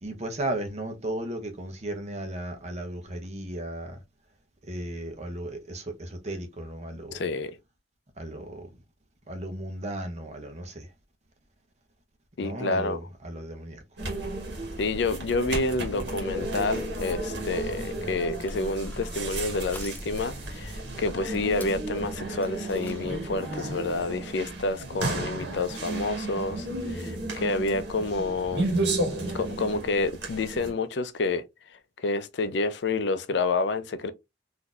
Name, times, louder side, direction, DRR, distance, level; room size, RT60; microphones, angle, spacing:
voice 1, 0.0-4.0 4.7-7.2 8.2-8.7 9.3-10.9 12.4-13.8, right 1 dB, 40° right, 0.8 m, -35 dB
voice 2, 7.1-7.5 12.4-13.0 14.8-28.7 29.3-31.4 32.0-34.1, left 3 dB, 75° left, 0.5 m, -29 dB
sound 1, 14.0-30.7, right 2 dB, 75° right, 1.2 m, -33 dB
Crushing, 18.4-23.4, left 1 dB, 10° left, 0.4 m, -48 dB
3.8 x 2.7 x 2.4 m
head